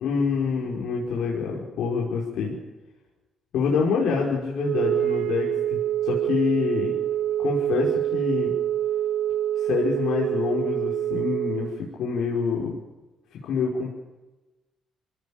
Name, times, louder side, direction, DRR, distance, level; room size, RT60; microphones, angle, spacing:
voice 1, 0.0-2.6 3.5-6.9 7.4-8.5 9.6-12.8 13.4-13.9, left 5 dB, 80° left, -2 dB, 5.2 m, -26 dB
Wind instrument woodwind instrument, 4.6-11.7, right 11 dB, 80° right, 2.5 m, -26 dB
24.5 x 17.5 x 8.9 m, 1.1 s
cardioid pair, 90°, 0 cm